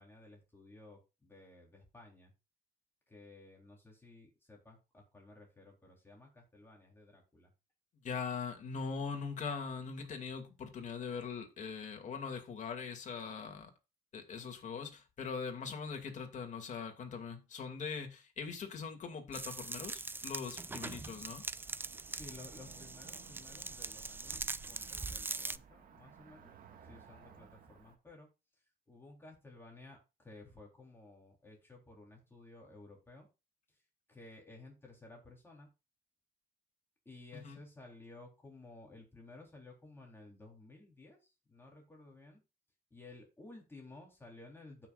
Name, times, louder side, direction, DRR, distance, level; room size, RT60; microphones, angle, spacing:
voice 1, 0.0-2.3 3.1-7.5 22.1-26.5 26.8-28.3 28.9-33.3 33.7-33.8 34.1-35.7 37.1-42.4 42.9-44.9, left 2 dB, 15° left, 3.7 m, -55 dB
voice 2, 8.0-13.7 14.1-21.4 37.3-37.6, left 5 dB, 45° left, 2.5 m, -41 dB
sound 1, 19.3-25.6, right 3 dB, 10° right, 0.4 m, -42 dB
Cricket / Motor vehicle (road), 21.1-28.0, right 7 dB, 55° right, 1.9 m, -58 dB
15.5 x 6.2 x 2.5 m
cardioid pair, 110°, 17 cm